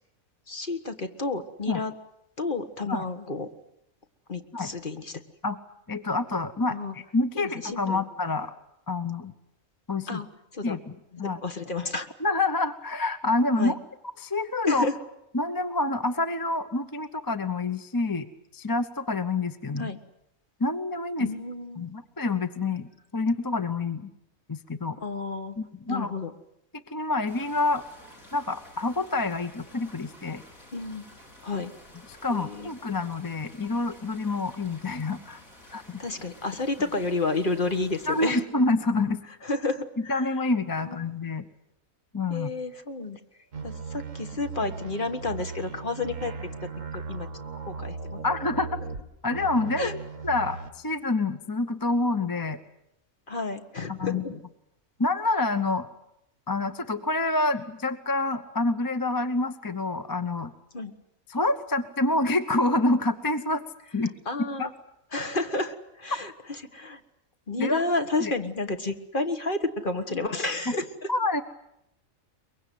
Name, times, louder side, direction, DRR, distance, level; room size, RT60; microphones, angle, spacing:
voice 1, 0.5-1.9 2.4-3.5 4.3-5.2 6.7-6.9 7.4-8.0 10.1-10.3 10.5-10.8 11.4-12.1 13.6-13.8 14.6-15.0 19.8-20.0 21.2-21.9 25.0-25.6 25.9-26.3 30.7-31.1 31.4-31.7 32.3-32.7 35.6-38.4 39.4-40.4 40.8-41.1 42.3-43.2 43.6-46.3 46.6-46.7 46.9-47.3 47.7-48.2 49.8-49.9 53.3-54.4 60.7-60.9 64.3-64.7 65.1-67.0 67.5-71.1, left 3 dB, 40° left, 7 dB, 1.6 m, -31 dB
voice 2, 5.9-8.5 8.9-9.3 9.9-10.2 10.6-10.9 11.2-11.4 12.2-13.8 14.2-14.9 15.3-19.9 20.6-21.3 21.8-24.1 24.5-25.0 25.6-26.1 26.9-27.8 28.3-30.4 32.2-35.4 35.7-36.0 38.1-39.2 40.1-41.5 42.1-42.5 48.2-48.8 49.2-49.9 50.2-52.6 54.0-54.2 55.0-55.9 56.5-60.5 61.3-63.6 63.9-64.1 64.6-64.7 67.6-67.9 68.2-68.3 71.1-71.4, left 2 dB, 20° left, 10 dB, 0.8 m, -27 dB
sound 1, 27.3-38.4, left 1 dB, 75° left, 6.9 m, -51 dB
sound 2, 43.5-49.0 49.3-50.7, right 5 dB, 65° right, 2.2 m, -37 dB
23.5 x 22.0 x 9.4 m, 0.81 s
omnidirectional pair, 1.5 m